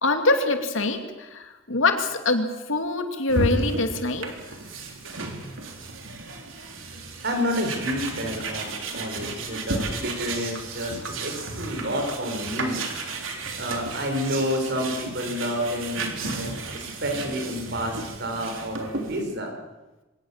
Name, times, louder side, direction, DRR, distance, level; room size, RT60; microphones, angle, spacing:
voice 1, 0.0-4.3, left 2 dB, 70° left, 6 dB, 2.6 m, -24 dB
sound 1, 3.3-19.2, right 2 dB, 75° right, 3.7 m, -33 dB
voice 2, 7.2-8.7 8.9-12.8 13.6-19.6, equal, 60° right, 4 dB, 5.3 m, -29 dB
24.0 x 19.0 x 7.4 m, 1.1 s
head